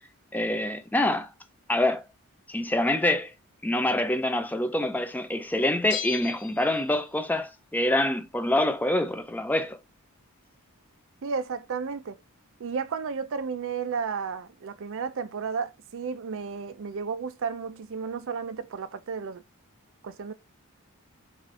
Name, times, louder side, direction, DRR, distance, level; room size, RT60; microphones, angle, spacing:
voice 1, 0.3-1.3 1.7-2.0 2.5-3.3 3.6-9.8, left 1 dB, 10° left, 0.4 m, -26 dB
Bell, 5.9-7.3 7.6-7.7, left 10 dB, 75° left, 0.7 m, -38 dB
voice 2, 11.2-12.2 12.6-19.4 20.0-20.3, right 5 dB, 60° right, 0.4 m, -33 dB
4.9 x 2.5 x 3.7 m
head